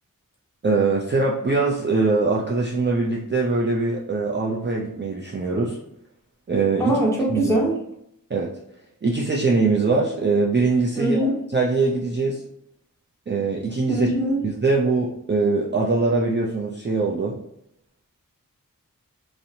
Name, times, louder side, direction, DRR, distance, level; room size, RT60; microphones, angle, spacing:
voice 1, 0.6-5.8 6.5-7.0 7.3-7.6 8.3-8.5 9.0-12.4 13.3-14.1 14.4-17.4, right 3 dB, 35° right, -3 dB, 0.4 m, -22 dB
voice 2, 6.8-7.7 11.0-11.4 13.9-14.4, right 1 dB, 10° left, -4 dB, 0.8 m, -22 dB
2.8 x 2.0 x 2.6 m, 0.76 s
wide cardioid pair, 50°, 34 cm